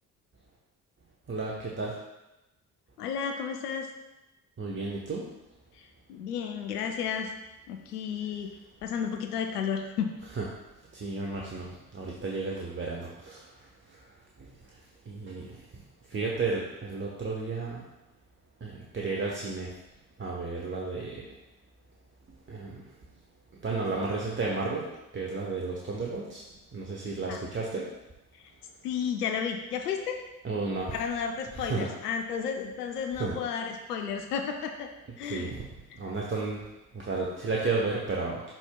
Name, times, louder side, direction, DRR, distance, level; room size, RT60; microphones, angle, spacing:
voice 1, 1.3-2.0 4.6-5.2 10.2-10.5 10.9-11.7 11.9-13.4 14.4-14.5 15.1-15.6 16.1-17.8 18.6-19.7 20.2-21.2 22.5-22.8 23.6-24.9 25.1-26.4 26.7-27.9 30.4-31.1 31.5-31.9 33.2-33.4 35.2-35.6 35.9-36.6 36.9-38.4, right 3 dB, 25° right, -2 dB, 1.0 m, -32 dB
voice 2, 3.0-3.9 5.8-7.3 7.7-8.5 8.8-10.1 27.3-27.4 28.8-30.2 30.9-34.9 35.2-35.5, left 7 dB, 80° left, 4 dB, 0.6 m, -32 dB
11.5 x 4.4 x 2.2 m, 0.98 s
figure-of-eight pair, 45°, 46 cm